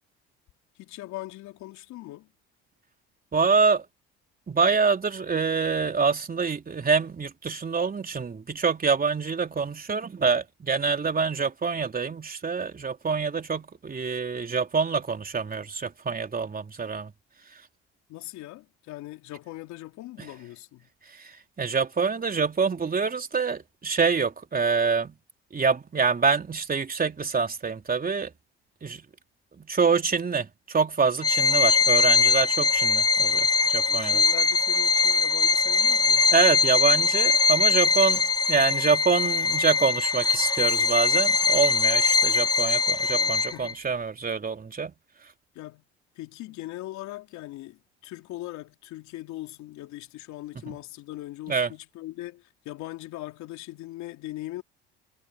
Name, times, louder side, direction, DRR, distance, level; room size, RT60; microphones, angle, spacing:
voice 1, 0.8-2.3 18.1-20.9 33.9-36.3 43.1-43.8 45.5-45.8 46.1-54.6, left 16 dB, 70° left, 3.3 m, -40 dB
voice 2, 3.3-3.8 4.5-17.1 21.2-25.2 25.5-28.3 28.8-29.1 29.6-34.2 36.3-44.9 50.7-50.8 51.5-51.7, right 5 dB, 30° right, 3.5 m, -26 dB
Bowed string instrument, 31.2-43.7, left 4 dB, 15° left, 1.1 m, -22 dB
supercardioid pair, 70°, 30 cm